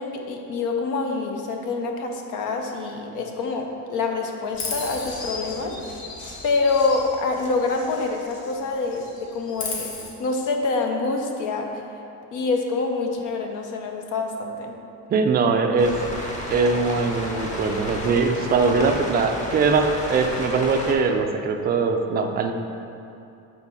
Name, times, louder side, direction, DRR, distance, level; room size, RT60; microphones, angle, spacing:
voice 1, 0.0-5.8 6.4-9.9 10.2-11.7 12.3-14.7, left 3 dB, 60° left, 3 dB, 0.9 m, -26 dB
Chirp tweet, 4.5-8.6 8.9-10.1, left 3 dB, 85° left, 1.6 m, -35 dB
voice 2, 15.1-15.9 16.5-22.5, right 4 dB, 25° right, 4 dB, 0.4 m, -21 dB
sound 1, 15.8-20.9, left 1 dB, 20° left, 1.1 m, -32 dB
8.1 x 4.0 x 5.5 m, 2.8 s
cardioid pair, 150°, 35 cm